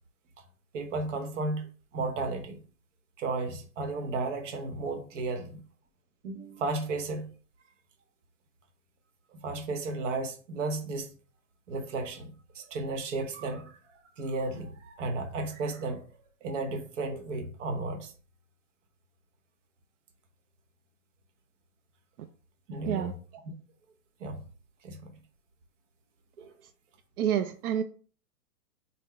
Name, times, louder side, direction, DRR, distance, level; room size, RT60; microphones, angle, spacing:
voice 1, 0.7-2.6 3.2-5.6 6.2-7.3 9.3-11.2 11.7-16.1 16.4-18.1 22.7-23.2 24.2-24.4 24.8-25.1 26.4-26.5, right 3 dB, 55° right, 0.9 m, -34 dB
voice 2, 27.2-27.8, right 9 dB, 85° right, 0.5 m, -28 dB
3.9 x 2.1 x 4.1 m
supercardioid pair, 170°, 44 cm